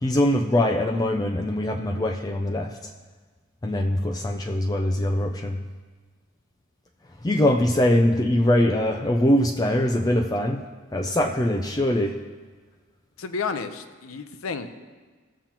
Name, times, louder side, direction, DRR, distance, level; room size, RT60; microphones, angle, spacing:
voice 1, 0.0-2.8 3.6-5.6 7.2-12.2, left 1 dB, 20° left, 3 dB, 0.4 m, -22 dB
voice 2, 13.2-14.7, left 5 dB, 85° left, 9 dB, 0.7 m, -31 dB
16.5 x 7.3 x 2.9 m, 1.4 s
head